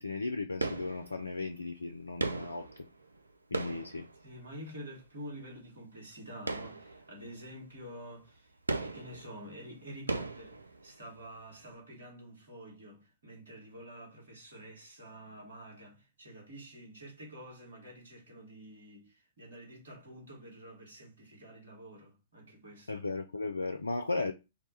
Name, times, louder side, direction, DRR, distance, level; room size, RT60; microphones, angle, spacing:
voice 1, 0.0-2.9 3.5-4.1 22.9-24.3, left 3 dB, 80° left, 0.3 m, -36 dB
sound 1, 0.6-1.5 2.2-4.8 6.4-7.4 7.8-7.9 8.7-11.3 11.5-11.6, right 3 dB, 80° right, 0.3 m, -38 dB
voice 2, 4.2-23.1, equal, 65° right, 1.5 m, -48 dB
2.7 x 2.2 x 4.1 m
figure-of-eight pair, 105°, 0 cm